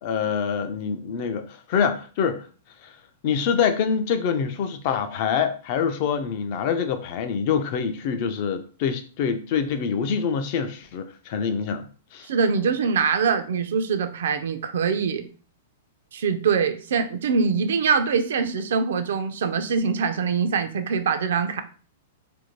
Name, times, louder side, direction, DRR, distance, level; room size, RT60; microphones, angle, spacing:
voice 1, 0.0-2.4 2.8-3.0 3.2-11.8 12.1-12.3, left 6 dB, 40° left, 0.4 m, -25 dB
voice 2, 12.2-15.3 16.1-21.6, right 5 dB, 75° right, 0.4 m, -23 dB
2.6 x 2.1 x 3.0 m
hypercardioid pair, 160°, 0 cm